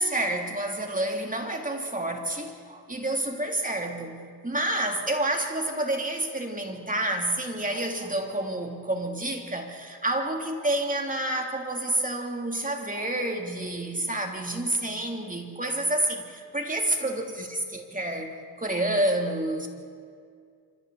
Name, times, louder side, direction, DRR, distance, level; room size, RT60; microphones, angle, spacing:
voice 1, 0.0-4.2 4.4-19.7, right 1 dB, 20° right, 2 dB, 3.4 m, -29 dB
27.0 x 25.0 x 4.3 m, 2.2 s
cardioid pair, 65°, 40 cm